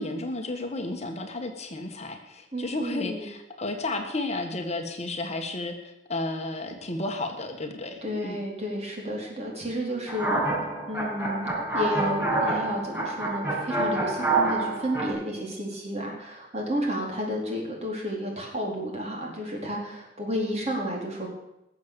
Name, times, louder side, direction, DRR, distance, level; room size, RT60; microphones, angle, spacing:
voice 1, 0.0-8.4, left 2 dB, 40° left, 5 dB, 1.5 m, -32 dB
voice 2, 2.5-3.3 8.0-10.3 10.9-21.3, equal, 40° right, -1 dB, 4.1 m, -31 dB
sound 1, 10.1-15.1, right 2 dB, 10° right, 6.2 m, -27 dB
19.0 x 7.4 x 6.9 m, 0.87 s
head